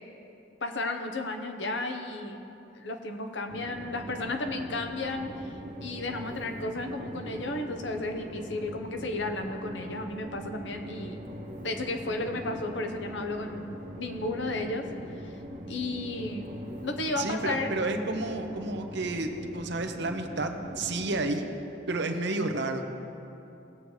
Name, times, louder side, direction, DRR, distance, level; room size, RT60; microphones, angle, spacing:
voice 1, 0.6-2.4 2.7-11.2 11.6-14.9 15.2-15.3 15.7-16.6 16.8-17.7, left 2 dB, 65° left, 4 dB, 1.0 m, -33 dB
Train, 3.5-21.3, equal, 40° right, 1.2 m, -42 dB
voice 2, 17.2-19.3 19.5-21.5 21.9-22.8, right 2 dB, 65° right, 5 dB, 0.9 m, -31 dB
19.5 x 7.8 x 3.3 m, 2.9 s
head